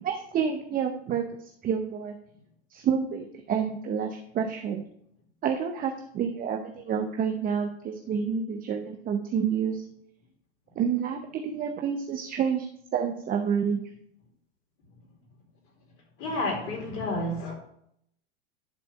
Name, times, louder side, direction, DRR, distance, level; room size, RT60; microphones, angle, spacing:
voice 1, 0.0-2.1 2.7-4.8 5.4-9.8 10.8-12.7 12.9-13.8, right 7 dB, 25° right, 4 dB, 0.9 m, -29 dB
voice 2, 16.2-17.5, left 1 dB, 40° left, 0 dB, 3.6 m, -30 dB
10.5 x 4.1 x 5.9 m, 0.72 s
hypercardioid pair, 110°, 34 cm